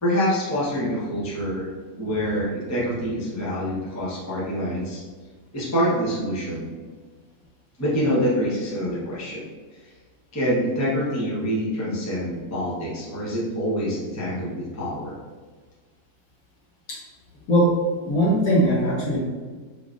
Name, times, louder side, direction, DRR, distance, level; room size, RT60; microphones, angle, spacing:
voice 1, 0.0-1.7 2.0-5.0 5.5-6.7 7.8-9.4 10.3-15.1, equal, 20° left, -7 dB, 0.4 m, -26 dB
voice 2, 18.0-19.2, equal, 60° left, -4 dB, 1.2 m, -20 dB
3.5 x 3.4 x 2.4 m, 1.4 s
omnidirectional pair, 1.9 m